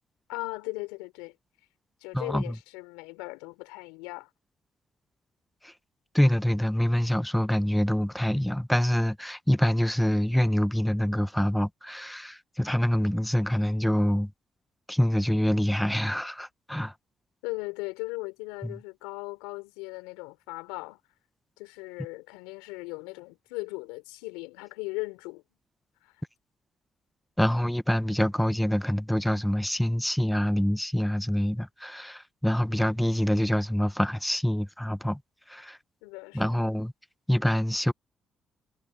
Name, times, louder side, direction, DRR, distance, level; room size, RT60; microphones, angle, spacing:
voice 1, 0.3-1.3 2.0-4.3 17.4-21.0 21.6-25.4 26.0-26.2 36.0-36.5, left 25 dB, 90° left, 3.8 m, -38 dB
voice 2, 2.1-2.6 5.6-5.7 6.1-14.3 14.9-16.9 18.6-18.7 27.4-35.2 35.5-35.8 36.3-36.9 37.3-37.9, equal, 5° left, 1.0 m, -26 dB
hypercardioid pair, 50°, 0 cm